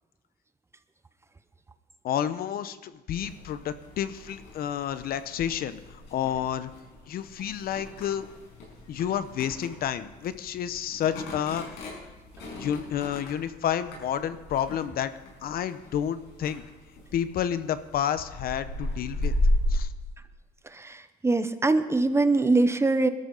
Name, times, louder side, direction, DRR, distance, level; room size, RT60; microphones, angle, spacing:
voice 1, 2.0-6.7 7.1-8.3 8.9-11.6 12.6-15.1 15.4-16.6 17.1-19.3 19.7-19.9, left 9 dB, 60° left, 13 dB, 0.8 m, -30 dB
sound 1, 3.1-19.8, left 1 dB, 90° left, 5.9 m, -35 dB
voice 2, 20.6-23.1, right 3 dB, 15° right, 11 dB, 0.8 m, -23 dB
20.5 x 13.0 x 3.9 m, 1.2 s
cardioid pair, 110°, 17 cm